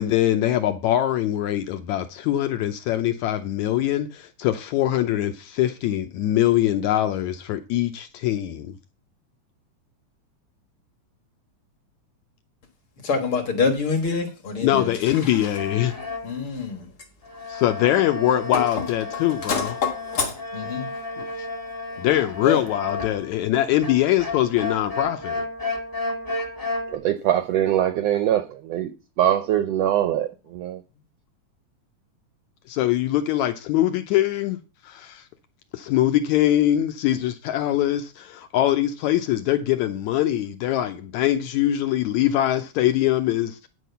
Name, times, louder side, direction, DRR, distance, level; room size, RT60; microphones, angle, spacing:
voice 1, 0.0-8.7 14.6-15.9 17.5-19.7 21.2-21.3 22.0-25.5 32.7-34.6 34.9-35.2 35.7-43.7, left 12 dB, 75° left, 1.9 m, -23 dB
voice 2, 13.0-15.5 16.2-16.9 18.5-18.9 19.1-20.9 21.9-22.0 22.4-22.6, left 5 dB, 50° left, 2.0 m, -27 dB
sound 1, 15.6-16.4 17.2-23.3 23.8-27.0, left 3 dB, 15° left, 0.8 m, -32 dB
voice 3, 26.9-28.9 29.2-30.8, right 11 dB, 85° right, 1.4 m, -22 dB
10.0 x 4.7 x 6.7 m
omnidirectional pair, 3.7 m